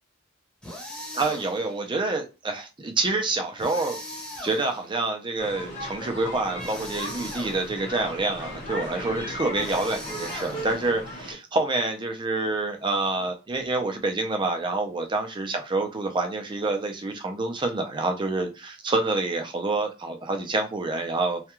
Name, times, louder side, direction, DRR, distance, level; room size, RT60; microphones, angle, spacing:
sound 1, 0.6-1.8 3.6-5.0 6.6-7.9 9.6-11.0, left 1 dB, 5° left, 0.8 m, -39 dB
voice 1, 1.1-4.0 4.4-21.4, right 3 dB, 25° right, 5 dB, 0.4 m, -27 dB
sound 2, 5.4-11.3, left 1 dB, 40° left, 0.9 m, -36 dB
2.3 x 2.2 x 2.9 m, 0.29 s
head